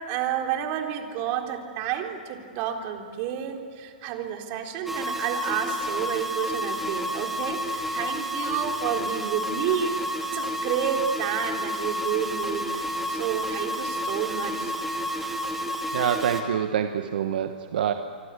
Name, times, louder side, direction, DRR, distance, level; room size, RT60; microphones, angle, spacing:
voice 1, 0.0-14.7, right 9 dB, 40° right, 3 dB, 3.8 m, -30 dB
sound 1, 4.9-16.4, equal, 5° right, 2.7 m, -30 dB
voice 2, 15.9-17.9, right 9 dB, 70° right, 7 dB, 1.4 m, -26 dB
26.0 x 25.5 x 8.4 m, 2.3 s
hypercardioid pair, 140°, 5 cm